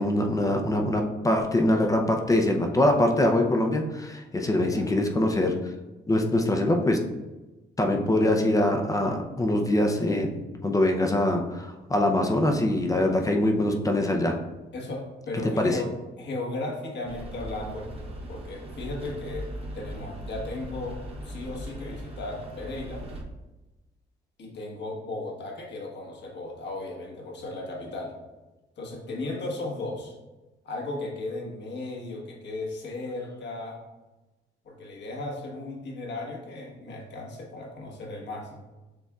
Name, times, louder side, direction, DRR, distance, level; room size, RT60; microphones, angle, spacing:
voice 1, 0.0-5.5 6.1-7.0 7.8-14.4 15.6-15.8, left 1 dB, 15° left, 2 dB, 0.6 m, -23 dB
voice 2, 4.6-4.9 14.7-17.9 18.3-23.1 24.4-28.2 28.8-30.2 30.6-33.8 34.6-38.7, left 2 dB, 60° left, -1 dB, 1.3 m, -36 dB
sound 1, 17.0-23.2, equal, 30° right, 0.8 m, -39 dB
6.6 x 3.5 x 2.3 m, 1.1 s
cardioid pair, 90°, 20 cm